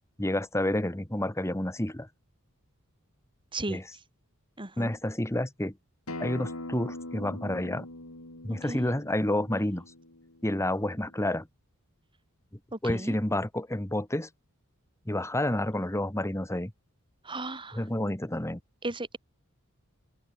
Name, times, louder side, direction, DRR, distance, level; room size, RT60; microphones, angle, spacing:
voice 1, 0.2-2.1 3.7-3.8 4.8-5.7 6.2-7.8 8.4-9.8 10.4-11.5 12.8-14.3 15.1-16.7 17.7-18.6, left 1 dB, 15° left, 1.6 m, -29 dB
voice 2, 4.6-4.9 8.7-8.9 12.7-13.2 17.2-17.8 18.8-19.2, right 2 dB, 25° right, 2.8 m, -35 dB
Acoustic guitar, 6.1-11.3, left 2 dB, 85° left, 4.6 m, -42 dB
open air
head